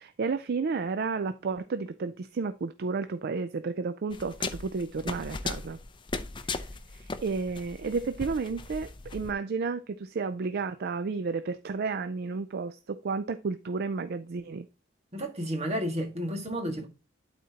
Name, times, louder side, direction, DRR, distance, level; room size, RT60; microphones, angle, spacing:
voice 1, 0.0-5.8 6.9-14.7, right 4 dB, 55° right, 0.4 m, -32 dB
sound 1, 4.1-9.3, left 3 dB, 25° left, 0.6 m, -37 dB
voice 2, 15.1-16.9, equal, 35° right, 1.7 m, -32 dB
12.0 x 4.2 x 2.8 m
head